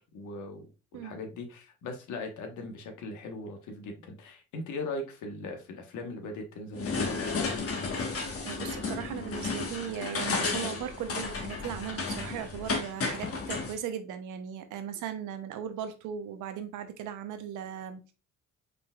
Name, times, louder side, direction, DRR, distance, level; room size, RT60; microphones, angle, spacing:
voice 1, 0.1-0.6 0.9-7.2, left 2 dB, 80° left, 1.2 m, -39 dB
sound 1, 6.7-13.7, left 4 dB, 50° left, 1.2 m, -33 dB
voice 2, 8.4-18.1, right 9 dB, 85° right, 0.7 m, -38 dB
5.0 x 3.9 x 2.3 m
supercardioid pair, 70°, 30 cm